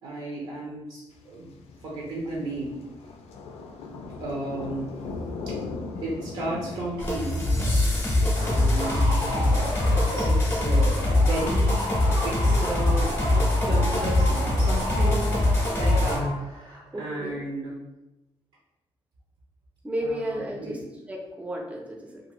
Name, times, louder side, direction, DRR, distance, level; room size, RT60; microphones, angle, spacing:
voice 1, 0.0-2.8 4.1-4.9 5.2-5.5 6.0-7.5 8.4-11.8 12.2-15.3 15.8-17.8 20.0-20.8, right 2 dB, 65° right, -4 dB, 0.7 m, -34 dB
sound 1, 1.2-7.2, left 3 dB, 85° left, 0.4 m, -38 dB
sound 2, 7.0-16.2, left 2 dB, 20° left, 0.7 m, -23 dB
voice 2, 8.2-8.6 16.9-17.4 19.8-20.8 21.1-22.2, equal, 15° right, 0 dB, 0.5 m, -33 dB
sound 3, 8.3-16.6, equal, 85° right, 1.4 m, -32 dB
2.6 x 2.5 x 3.0 m, 1.0 s
cardioid pair, 135°, 10 cm